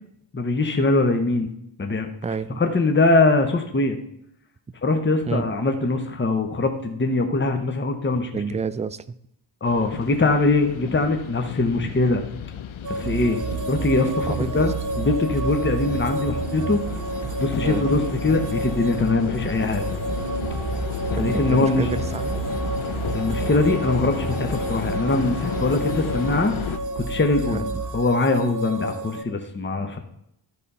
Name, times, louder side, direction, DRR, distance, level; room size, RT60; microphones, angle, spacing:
voice 1, 0.3-1.5 1.8-2.1 2.6-4.0 4.8-8.3 9.6-12.3 12.9-13.4 13.7-14.7 15.0-16.8 17.4-19.9 20.7-20.8 21.1-21.9 23.1-26.5 27.0-27.6 27.9-30.0, left 3 dB, 25° left, 5 dB, 1.0 m, -22 dB
voice 2, 2.2-2.6 5.3-5.5 8.3-9.2 11.7-11.9 14.3-14.7 17.6-18.0 21.2-22.4 27.5-27.6, right 5 dB, 15° right, 15 dB, 0.3 m, -29 dB
sound 1, 9.6-26.8, left 9 dB, 80° left, 0.8 m, -33 dB
sound 2, 12.8-29.2, right 2 dB, 40° right, 0.7 m, -32 dB
sound 3, 13.0-28.2, right 5 dB, 65° right, 3.1 m, -32 dB
12.5 x 4.2 x 5.4 m, 0.75 s
wide cardioid pair, 85°, 48 cm